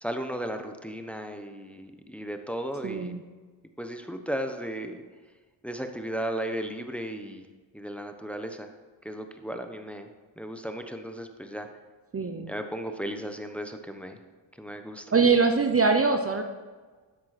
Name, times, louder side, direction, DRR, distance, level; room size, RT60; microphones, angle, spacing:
voice 1, 0.0-3.1 3.8-5.0 5.6-7.4 7.7-8.7 9.0-10.1 10.4-11.7 12.5-14.2 14.6-15.0, equal, 5° left, 6 dB, 1.1 m, -35 dB
voice 2, 2.8-3.2 12.1-12.5 15.1-16.4, right 4 dB, 30° right, 6 dB, 0.8 m, -23 dB
10.5 x 7.6 x 4.3 m, 1.4 s
cardioid pair, 60°, 48 cm